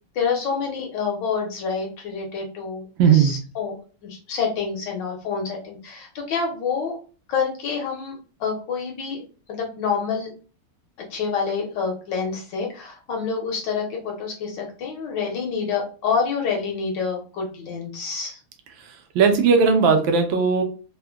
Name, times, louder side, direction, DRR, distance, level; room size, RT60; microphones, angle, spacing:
voice 1, 0.1-7.0 7.3-9.2 9.5-10.3 11.1-18.4, left 5 dB, 65° left, 1 dB, 1.3 m, -27 dB
voice 2, 3.0-3.4 19.1-20.6, right 5 dB, 75° right, 5 dB, 1.2 m, -17 dB
3.6 x 2.1 x 2.2 m, 0.37 s
omnidirectional pair, 2.4 m